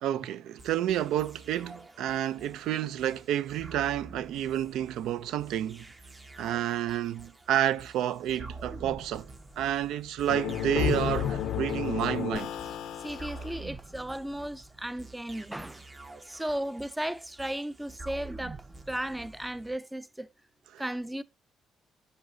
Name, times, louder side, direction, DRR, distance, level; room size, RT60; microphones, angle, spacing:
voice 1, 0.0-5.9 6.4-9.3 9.6-12.5 20.7-20.8, right 11 dB, 85° right, 0.3 m, -30 dB
sound 1, 0.6-19.8, right 3 dB, 25° right, 0.8 m, -48 dB
sound 2, 10.3-13.6, left 9 dB, 85° left, 0.5 m, -31 dB
voice 2, 13.0-15.9 16.2-18.6 18.9-20.3 20.8-21.2, right 1 dB, 10° right, 0.4 m, -35 dB
7.8 x 5.6 x 2.6 m
cardioid pair, 90°, 0 cm